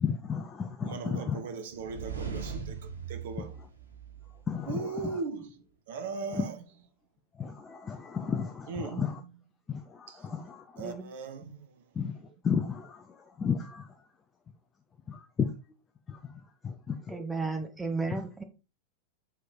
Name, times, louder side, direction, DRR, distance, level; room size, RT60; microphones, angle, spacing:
voice 1, 0.0-1.4 4.5-4.8 7.4-8.7 9.0-9.1 9.7-10.6 12.0-12.1 12.4-13.0 13.4-13.8 15.1-15.5 16.6-16.7 17.1-17.3, left 6 dB, 20° left, 0.7 m, -32 dB
voice 2, 0.8-3.6 4.7-6.7 8.7-9.4 10.1-10.2 10.8-11.8, right 4 dB, 55° right, 1.3 m, -39 dB
sound 1, 1.7-4.7, right 6 dB, 75° right, 1.6 m, -40 dB
voice 3, 17.1-18.4, right 4 dB, 10° right, 1.1 m, -33 dB
6.2 x 4.7 x 4.6 m
figure-of-eight pair, 90°, 0 cm